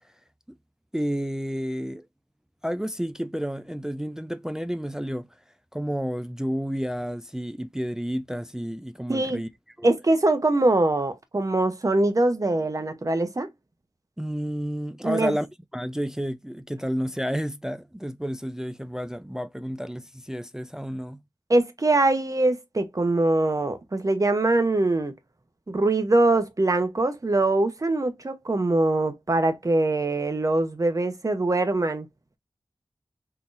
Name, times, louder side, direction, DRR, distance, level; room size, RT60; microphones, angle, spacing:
voice 1, 0.9-2.0 2.6-5.3 5.7-9.5 9.8-9.9 14.2-15.5 15.7-21.2, equal, 5° right, 0.3 m, -30 dB
voice 2, 9.1-9.4 9.8-13.5 15.0-15.3 21.5-25.1 25.7-32.1, right 2 dB, 40° right, 0.8 m, -23 dB
3.8 x 2.8 x 2.4 m
wide cardioid pair, 65°, 9 cm